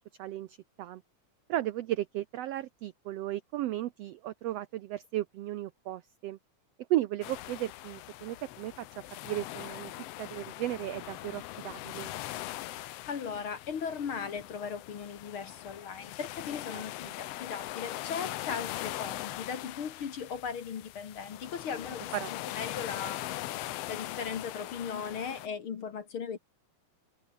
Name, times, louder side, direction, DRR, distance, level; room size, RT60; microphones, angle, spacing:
voice 1, 0.2-1.0 1.5-6.4 6.9-8.9 9.2-9.9 10.2-12.1 16.7-16.8 22.1-22.4, right 14 dB, 80° right, 1.4 m, -35 dB
sound 1, 7.2-25.5, left 15 dB, 85° left, 1.4 m, -41 dB
voice 2, 12.8-26.4, left 6 dB, 50° left, 2.0 m, -38 dB
omnidirectional pair, 3.7 m